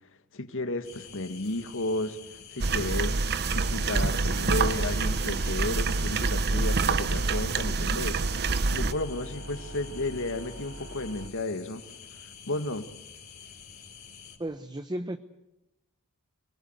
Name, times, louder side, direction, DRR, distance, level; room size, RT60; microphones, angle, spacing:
voice 1, 0.3-2.2 2.5-8.2 8.7-11.8 12.5-12.9, left 2 dB, 60° left, 1.8 m, -33 dB
sound 1, 0.8-14.4, left 7 dB, 45° left, 4.9 m, -48 dB
sound 2, 2.6-8.9, right 4 dB, 50° right, 0.8 m, -26 dB
sound 3, 3.7-11.3, right 1 dB, 75° right, 1.9 m, -42 dB
voice 2, 14.4-15.2, right 1 dB, 20° right, 0.9 m, -34 dB
27.0 x 20.0 x 8.0 m
head